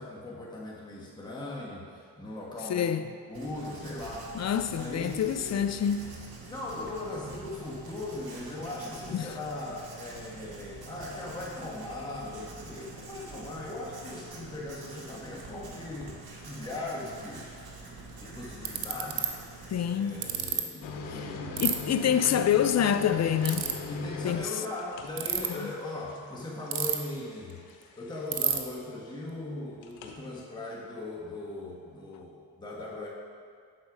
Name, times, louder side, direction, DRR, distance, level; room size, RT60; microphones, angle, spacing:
voice 1, 0.0-2.9 3.3-4.5 4.7-5.7 6.5-16.2 16.4-17.5 18.2-19.3 19.5-22.0 23.9-27.6 27.9-33.1, left 2 dB, 10° left, -5 dB, 1.3 m, -39 dB
voice 2, 2.7-3.0 4.3-6.2 9.1-9.3 19.7-20.2 21.1-21.3 21.6-23.7 24.2-24.5 25.5-25.7, left 9 dB, 40° left, 10 dB, 0.4 m, -27 dB
Writing, 3.3-20.4, right 3 dB, 55° right, 1.5 m, -46 dB
Ratchet pawl, 17.9-18.0 18.6-19.3 20.2-20.6 21.6-21.7 23.4-23.7 25.1-25.5 26.7-27.2 27.5-27.6 27.8-27.9 28.3-28.6, right 11 dB, 75° right, 0.7 m, -28 dB
sound 1, 20.8-28.5 29.8-30.2, left 4 dB, 80° left, 0.8 m, -41 dB
7.3 x 4.3 x 4.8 m, 2.1 s
supercardioid pair, 60°, 45 cm